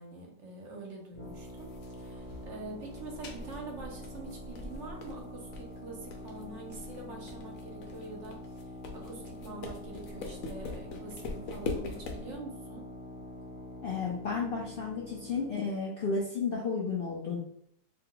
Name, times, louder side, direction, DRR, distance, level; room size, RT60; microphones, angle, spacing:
voice 1, 0.0-8.6 8.9-12.9, right 3 dB, 55° right, 0 dB, 0.9 m, -45 dB
sound 1, 1.1-15.6, left 1 dB, 10° left, 0.9 m, -46 dB
sound 2, 1.2-12.4, left 3 dB, 70° left, 0.9 m, -43 dB
voice 2, 13.8-17.4, left 4 dB, 85° left, -4 dB, 0.5 m, -32 dB
2.7 x 2.2 x 3.6 m, 0.70 s
omnidirectional pair, 1.7 m